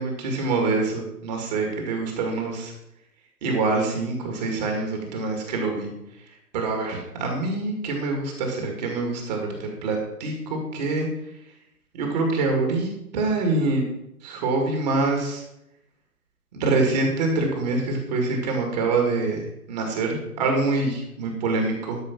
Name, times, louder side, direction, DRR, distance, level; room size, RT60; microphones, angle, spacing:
voice 1, 0.0-2.7 3.4-5.9 6.5-11.1 11.9-13.8 14.2-15.4 16.5-22.0, right 3 dB, 25° right, 2 dB, 2.2 m, -25 dB
12.5 x 6.2 x 5.9 m, 0.82 s
figure-of-eight pair, 140°, 48 cm